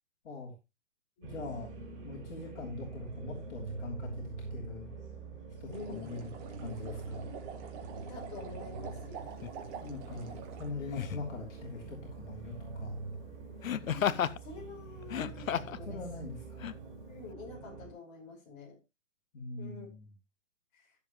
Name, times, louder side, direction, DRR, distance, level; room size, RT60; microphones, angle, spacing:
voice 1, 1.2-1.7 2.0-4.9 5.6-6.3 6.6-7.3 9.8-13.0 15.9-16.7 19.3-20.1, left 3 dB, 65° left, -1 dB, 3.4 m, -42 dB
sound 1, 1.2-17.9, right 4 dB, 65° right, 4.5 m, -44 dB
voice 2, 5.6-6.1 7.9-9.5 13.7-16.0 17.0-18.8 19.6-19.9 20.7-20.9, left 3 dB, 30° left, -1 dB, 5.1 m, -48 dB
sound 2, 5.7-10.7, right 7 dB, 30° right, 1.7 m, -47 dB
Laughter, 9.4-9.6 10.9-11.3 13.6-14.4 15.0-15.8 16.6-16.7, left 9 dB, 90° left, 0.7 m, -32 dB
13.0 x 7.3 x 3.1 m, 0.24 s
hypercardioid pair, 145°, 39 cm